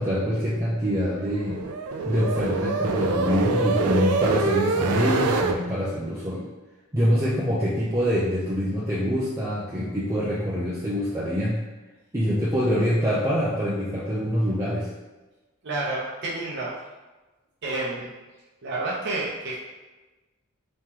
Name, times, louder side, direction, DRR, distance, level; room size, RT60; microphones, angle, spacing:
voice 1, 0.0-1.6 2.1-6.5 6.9-11.6 12.1-14.9, equal, 15° right, -8 dB, 0.5 m, -25 dB
sound 1, 0.9-5.6, right 3 dB, 85° right, 0.4 m, -25 dB
voice 2, 15.6-16.7 17.6-18.1 18.6-19.6, right 2 dB, 55° right, -5 dB, 0.7 m, -29 dB
3.7 x 3.1 x 2.9 m, 1.2 s
head